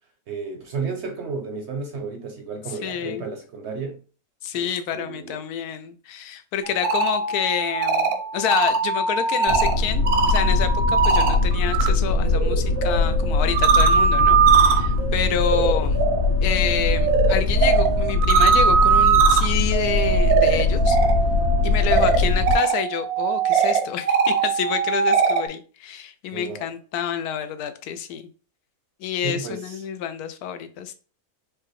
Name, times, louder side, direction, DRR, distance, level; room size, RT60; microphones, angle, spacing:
voice 1, 0.3-4.0 4.5-5.4 21.8-22.0 26.3-26.7 29.2-29.9, right 4 dB, 65° right, 0.7 m, -33 dB
voice 2, 2.8-3.3 4.4-16.0 16.4-21.0 21.6-28.2 29.0-30.9, left 9 dB, 85° left, 1.1 m, -28 dB
sound 1, 6.6-11.9 12.2-25.5, right 6 dB, 85° right, 1.2 m, -21 dB
sound 2, 9.5-22.5, left 3 dB, 55° left, 1.4 m, -22 dB
4.9 x 2.2 x 3.0 m
omnidirectional pair, 1.6 m